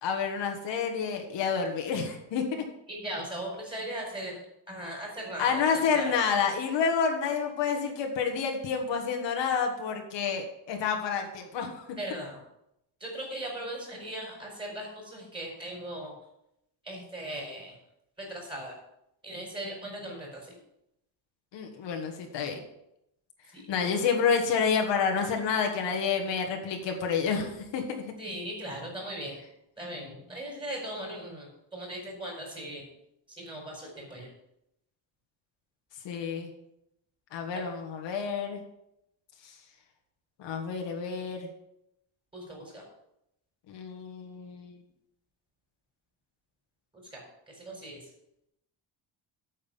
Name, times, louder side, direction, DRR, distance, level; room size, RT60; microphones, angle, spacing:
voice 1, 0.0-2.7 5.4-11.8 21.5-22.6 23.7-28.0 36.0-36.5 37.3-38.6 39.4-39.6 40.4-41.5 43.7-44.8, left 6 dB, 75° left, 3 dB, 1.8 m, -29 dB
voice 2, 2.9-4.4 4.7-6.1 12.0-12.4 13.0-16.1 16.8-17.7 18.2-18.7 19.2-20.5 23.5-23.7 28.2-29.4 29.8-32.9 33.4-34.3 37.5-37.7 42.3-42.8 47.1-47.2 47.5-48.0, right 1 dB, 10° right, -2 dB, 4.4 m, -38 dB
8.9 x 6.6 x 7.2 m, 0.82 s
cardioid pair, 165°, 44 cm